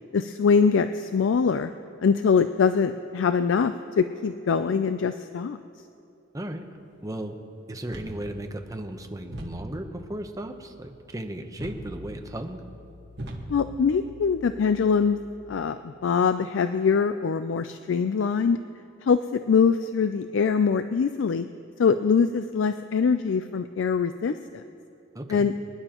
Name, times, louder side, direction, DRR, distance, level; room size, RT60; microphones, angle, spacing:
voice 1, 0.1-1.7 2.0-5.6 13.5-15.2 15.5-18.6 19.0-21.5 21.8-24.6 25.3-25.5, left 5 dB, 70° left, 10 dB, 0.4 m, -23 dB
voice 2, 7.0-7.4 7.7-12.6 25.1-25.5, right 1 dB, 20° right, 5 dB, 0.8 m, -35 dB
sound 1, 7.8-15.3, equal, 60° right, 1.6 m, -42 dB
25.0 x 11.0 x 3.0 m, 2.6 s
head